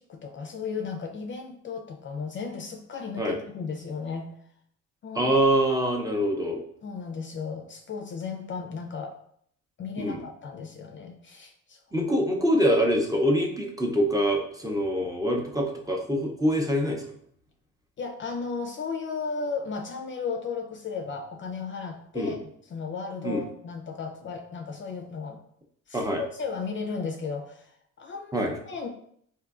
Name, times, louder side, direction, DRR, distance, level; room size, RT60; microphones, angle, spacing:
voice 1, 0.0-4.3 5.0-5.3 6.8-9.2 9.8-11.8 18.0-22.4 22.7-25.4 25.9-28.9, left 5 dB, 40° left, 4 dB, 0.4 m, -35 dB
voice 2, 5.1-6.6 10.0-10.2 11.9-17.1 22.1-22.4 23.2-23.4 25.9-26.2 28.3-28.5, equal, 10° right, 0 dB, 0.6 m, -25 dB
3.7 x 2.6 x 2.4 m, 0.66 s
cardioid pair, 90°, 30 cm